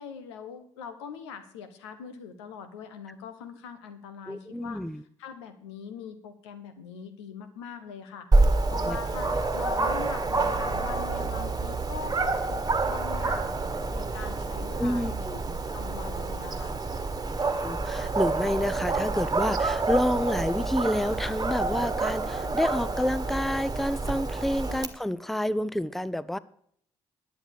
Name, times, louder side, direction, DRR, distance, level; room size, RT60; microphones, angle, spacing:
voice 1, 0.0-4.8 5.2-8.3 8.7-15.2 15.7-16.8 24.7-24.8, left 6 dB, 85° left, 9 dB, 1.3 m, -42 dB
voice 2, 4.3-5.0 8.8-9.0 14.8-15.6 17.6-26.4, left 1 dB, ahead, 18 dB, 0.6 m, -29 dB
Dog, 8.3-24.9, right 3 dB, 25° right, 1.6 m, -28 dB
11.0 x 8.0 x 6.7 m, 0.65 s
hypercardioid pair, 45°, 14 cm